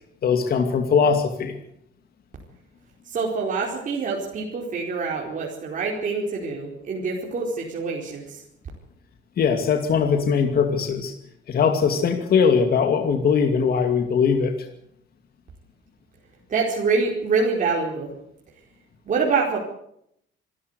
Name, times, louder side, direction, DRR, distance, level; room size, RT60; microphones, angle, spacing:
voice 1, 0.2-1.6 9.4-11.1 11.5-14.5, left 6 dB, 50° left, 5 dB, 2.5 m, -20 dB
voice 2, 3.1-8.4 16.5-18.1 19.1-19.6, right 4 dB, 40° right, -2 dB, 4.7 m, -25 dB
25.5 x 13.5 x 8.2 m, 0.73 s
cardioid pair, 135°, 20 cm